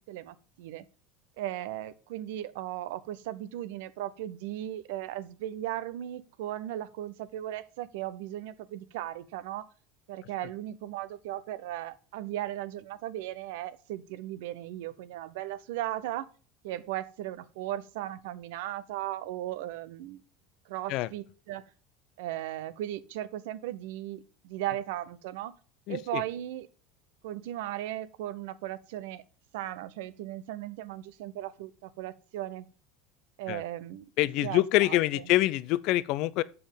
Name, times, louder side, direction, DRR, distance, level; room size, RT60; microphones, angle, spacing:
voice 1, 0.1-0.9 1.4-9.7 10.1-16.3 16.6-20.2 20.7-21.6 22.2-25.5 25.9-26.7 27.2-29.2 29.5-32.7 33.4-34.1 34.4-35.2, right 13 dB, 70° right, 0.6 m, -37 dB
voice 2, 25.9-26.2 33.5-33.6 34.2-36.4, left 17 dB, 60° left, 0.5 m, -26 dB
7.2 x 6.9 x 5.2 m
hypercardioid pair, 75°, 0 cm